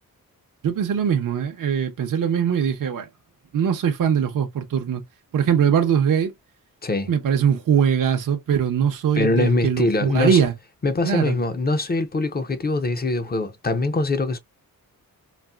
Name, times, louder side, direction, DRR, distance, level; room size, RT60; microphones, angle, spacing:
voice 1, 0.6-3.1 3.5-5.0 5.3-6.3 7.1-10.5 11.0-11.4, right 8 dB, 60° right, 0.7 m, -21 dB
voice 2, 9.1-10.4 10.8-14.4, left 2 dB, 25° left, 0.5 m, -23 dB
4.0 x 2.0 x 2.2 m
wide cardioid pair, 120°, 35 cm